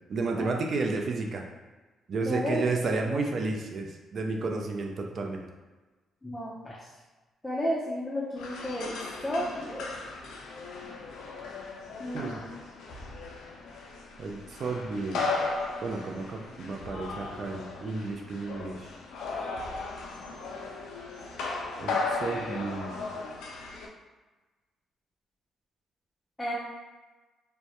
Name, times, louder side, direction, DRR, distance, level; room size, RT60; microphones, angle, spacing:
voice 1, 0.1-1.4 2.1-5.5 12.1-12.4 14.2-15.5 15.8-18.9 21.8-23.0, right 3 dB, 55° right, 2 dB, 0.3 m, -32 dB
voice 2, 2.3-2.7 3.0-3.2 6.2-6.8 7.4-9.0 9.2-9.9 12.0-12.5 26.4-26.5, equal, 10° left, -7 dB, 0.5 m, -32 dB
sound 1, 8.4-23.9, left 3 dB, 85° left, 0.3 m, -36 dB
2.1 x 2.0 x 2.8 m, 1.3 s
cardioid pair, 90°, 0 cm